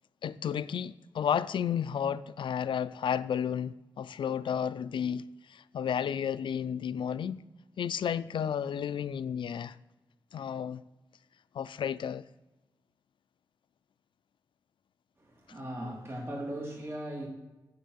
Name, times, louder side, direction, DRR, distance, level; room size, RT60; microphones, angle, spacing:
voice 1, 0.2-7.4 7.8-9.8 10.3-10.8 11.5-12.2, left 8 dB, 85° left, 0.4 m, -32 dB
voice 2, 15.2-17.3, right 1 dB, 30° right, 3.2 m, -38 dB
7.6 x 7.6 x 7.2 m
wide cardioid pair, 150°, 8 cm